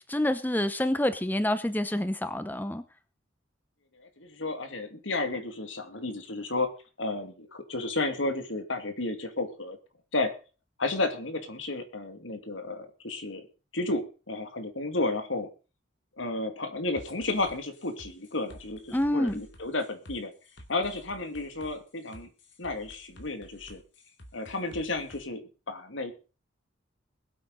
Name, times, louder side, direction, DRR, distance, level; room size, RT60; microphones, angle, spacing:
voice 1, 0.1-2.8 18.9-19.4, left 1 dB, 10° left, 11 dB, 0.8 m, -27 dB
voice 2, 4.0-6.7 7.0-9.8 10.1-10.3 10.8-13.4 13.7-15.5 16.2-20.3 20.7-22.3 22.6-23.8 24.3-26.1, left 2 dB, 85° left, 7 dB, 2.4 m, -32 dB
sound 1, 17.0-25.2, equal, 70° left, 2.7 m, -51 dB
21.5 x 8.5 x 4.0 m, 0.35 s
head